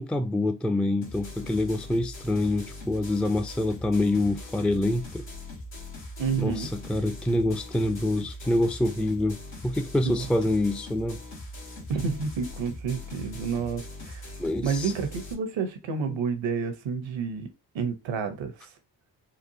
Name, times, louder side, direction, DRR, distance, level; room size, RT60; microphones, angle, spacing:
voice 1, 0.0-5.2 6.4-11.2 14.4-14.9 16.1-16.2, left 1 dB, ahead, 0.4 m, -26 dB
sound 1, 1.0-15.3, left 1 dB, 85° left, 1.7 m, -41 dB
voice 2, 6.2-6.7 10.0-10.3 11.9-14.3 14.6-17.5 17.7-18.7, right 6 dB, 75° right, 0.9 m, -30 dB
4.3 x 2.4 x 2.7 m
supercardioid pair, 45°, 47 cm